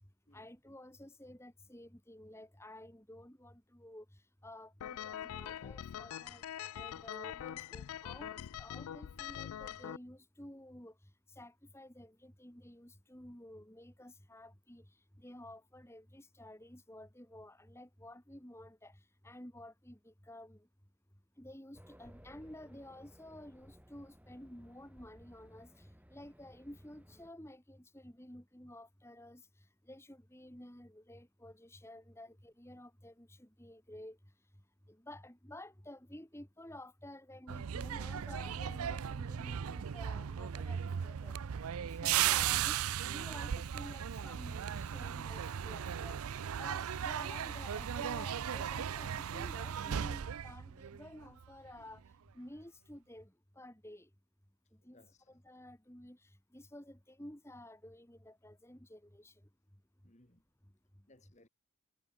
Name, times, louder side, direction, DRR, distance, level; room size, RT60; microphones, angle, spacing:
voice 1, 0.3-6.4 6.7-11.0 11.3-20.7 21.4-34.2 34.9-41.4 41.8-52.0 52.3-54.1 54.7-59.4, left 1 dB, 10° left, 2.2 m, -52 dB
sound 1, 4.8-10.0, left 10 dB, 80° left, 0.3 m, -43 dB
Race car auto racing, 21.8-27.3, equal, 5° right, 4.6 m, -60 dB
sound 2, 37.5-51.5 51.8-52.1, right 9 dB, 80° right, 0.5 m, -36 dB
voice 2, 54.8-55.4 60.0-60.4 61.1-61.5, left 1 dB, 30° left, 2.4 m, -65 dB
head